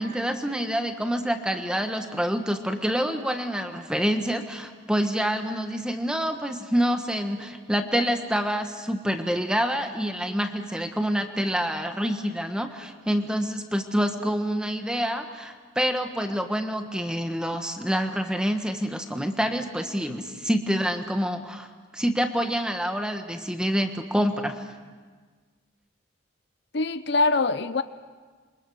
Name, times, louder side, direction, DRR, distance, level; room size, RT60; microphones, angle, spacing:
voice 1, 0.0-21.7 21.9-24.6, equal, 5° right, 6 dB, 1.4 m, -27 dB
voice 2, 26.7-27.8, left 3 dB, 55° left, 12 dB, 0.6 m, -23 dB
28.0 x 24.0 x 6.5 m, 1.5 s
head